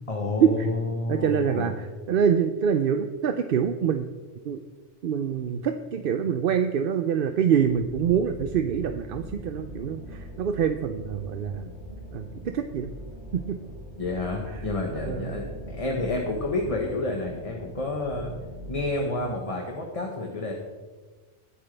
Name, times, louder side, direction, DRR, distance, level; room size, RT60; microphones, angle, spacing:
voice 1, 0.1-1.7 14.0-18.3 18.7-20.5, left 2 dB, 30° left, 0 dB, 1.3 m, -29 dB
voice 2, 1.1-4.1 4.4-4.6 5.0-11.7 12.1-12.9 13.3-13.6 14.5-14.6 14.9-15.4, right 7 dB, 60° right, 8 dB, 0.7 m, -25 dB
sound 1, 7.5-18.9, equal, 85° left, 5.2 m, -41 dB
21.5 x 7.9 x 3.4 m, 1.3 s
omnidirectional pair, 1.2 m